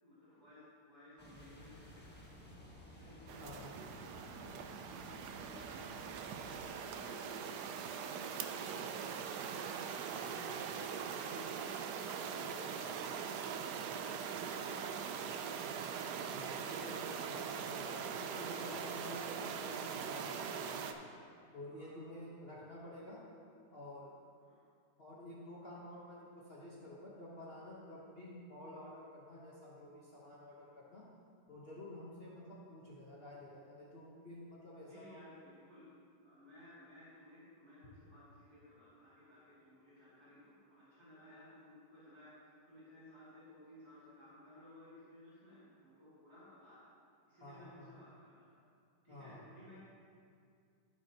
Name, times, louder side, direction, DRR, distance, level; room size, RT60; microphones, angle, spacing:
voice 1, 0.0-2.5 2.9-4.7 5.0-6.0 6.4-9.7 10.0-14.8 21.7-22.1 24.4-24.6 32.2-32.3 34.9-35.8 36.2-46.8 47.3-48.6 49.0-49.8, left 1 dB, 60° right, -13 dB, 3.1 m, -58 dB
sound 1, 1.2-6.7, left 1 dB, 5° left, 1.0 m, -55 dB
sound 2, 3.3-20.9, right 7 dB, 75° right, 1.1 m, -42 dB
voice 2, 16.3-21.0 21.5-23.2 23.7-24.1 25.0-31.1 31.5-35.2 47.4-47.9 49.1-49.4, left 1 dB, 40° left, -6 dB, 1.2 m, -50 dB
15.0 x 6.5 x 2.9 m, 2.3 s
omnidirectional pair, 1.9 m